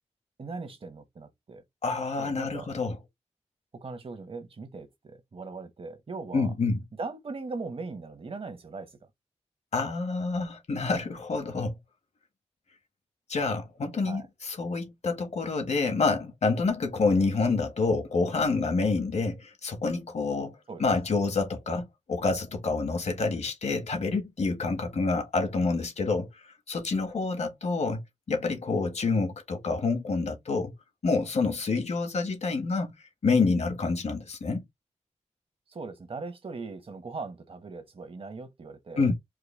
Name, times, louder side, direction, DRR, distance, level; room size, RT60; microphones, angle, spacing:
voice 1, 0.4-1.6 2.2-2.7 3.7-6.5 7.0-8.9 14.0-14.3 20.7-20.8 35.7-39.1, right 3 dB, 50° right, 1.2 m, -39 dB
voice 2, 1.8-3.0 6.3-6.8 9.7-11.8 13.3-26.3 26.7-28.0 28.3-30.7 31.0-32.9 33.2-34.6 39.0-39.1, left 4 dB, 70° left, 1.5 m, -27 dB
4.9 x 2.3 x 3.4 m
wide cardioid pair, 100°, 12 cm